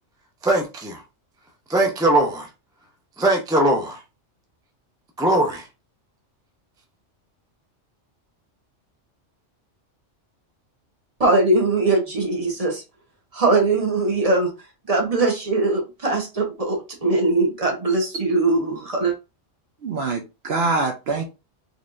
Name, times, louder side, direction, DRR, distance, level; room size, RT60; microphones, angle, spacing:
voice 1, 0.4-1.0 1.7-2.5 3.2-4.0 5.2-5.7, right 1 dB, 5° right, 0.5 m, -20 dB
voice 2, 11.2-12.8 13.3-14.5 14.9-19.1, right 2 dB, 30° right, 1.1 m, -21 dB
voice 3, 19.8-21.2, right 3 dB, 60° right, 0.9 m, -24 dB
4.1 x 3.1 x 2.6 m
omnidirectional pair, 1.3 m